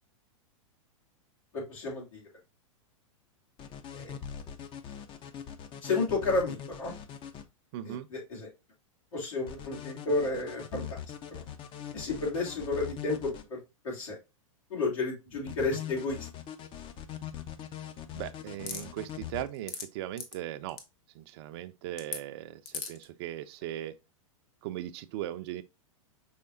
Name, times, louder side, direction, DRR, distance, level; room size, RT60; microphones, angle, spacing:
voice 1, 1.5-2.2 3.9-4.2 5.8-6.9 7.8-8.5 9.1-11.0 11.3-11.4 11.9-13.6 13.8-14.2 14.7-16.2, left 3 dB, 75° left, 2.8 m, -32 dB
sound 1, 3.6-7.4 9.5-13.4 15.5-19.4, left 9 dB, 30° left, 0.6 m, -42 dB
voice 2, 7.7-8.1 18.1-20.8 21.1-24.0 24.6-25.6, right 13 dB, 50° right, 0.4 m, -38 dB
sound 2, 18.7-18.8 19.5-19.8 20.2-20.3 20.7-20.8 22.0-22.2 22.7-23.0, left 6 dB, 50° left, 1.0 m, -37 dB
5.7 x 3.4 x 2.5 m
hypercardioid pair, 105°, 17 cm